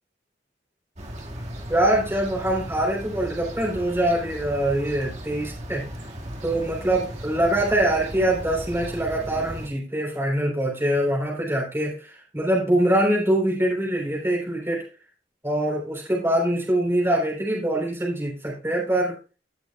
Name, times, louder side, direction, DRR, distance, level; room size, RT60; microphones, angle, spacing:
sound 1, 1.0-9.7, equal, 40° right, 2.0 m, -37 dB
voice 1, 1.7-5.9 6.4-14.9 15.4-19.1, right 1 dB, 15° right, -2 dB, 3.7 m, -24 dB
17.5 x 6.2 x 2.4 m, 0.34 s
head